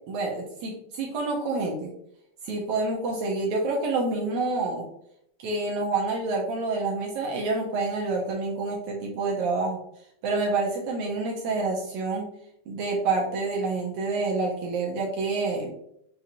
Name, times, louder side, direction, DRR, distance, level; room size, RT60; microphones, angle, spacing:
voice 1, 0.1-1.9 2.4-4.9 5.4-9.8 10.2-12.3 12.7-15.7, right 3 dB, 75° right, -2 dB, 1.8 m, -28 dB
7.1 x 2.9 x 2.5 m, 0.75 s
omnidirectional pair, 3.9 m